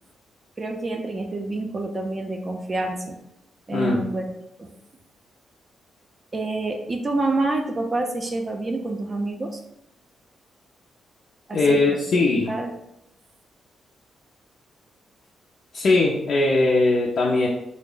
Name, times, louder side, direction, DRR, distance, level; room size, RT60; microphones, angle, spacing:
voice 1, 0.6-3.2 3.7-4.3 4.6-4.7 6.3-9.6 11.5-11.8 12.1-12.2 12.5-12.7, right 2 dB, 30° right, 3 dB, 0.4 m, -27 dB
voice 2, 3.7-4.0 11.5-12.5 15.7-17.5, left 3 dB, 60° left, -3 dB, 0.5 m, -20 dB
3.5 x 2.0 x 3.8 m, 0.83 s
cardioid pair, 120°, 0 cm